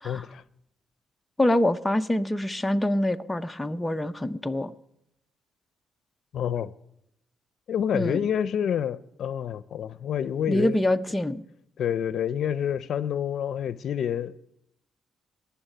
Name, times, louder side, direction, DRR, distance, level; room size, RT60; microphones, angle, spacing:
voice 1, 0.0-0.4 6.3-6.7 7.7-10.8 11.8-14.4, left 9 dB, 65° left, 0.6 m, -28 dB
voice 2, 1.4-4.7 7.9-8.3 10.5-11.4, left 1 dB, 10° left, 0.6 m, -25 dB
19.5 x 7.3 x 9.9 m
cardioid pair, 120°, 0 cm